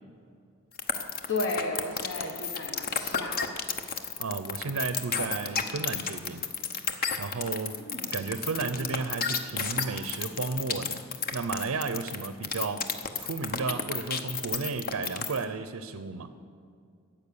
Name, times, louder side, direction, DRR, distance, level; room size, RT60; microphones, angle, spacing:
sound 1, 0.8-15.4, left 6 dB, 45° left, 0.9 m, -31 dB
voice 1, 1.3-3.4 7.8-8.1, left 2 dB, 60° left, 1 dB, 1.2 m, -33 dB
voice 2, 4.2-6.4 7.2-7.9 8.1-11.0 11.3-12.9 13.2-16.3, right 4 dB, 80° right, 10 dB, 0.6 m, -33 dB
13.5 x 8.9 x 6.9 m, 2.3 s
head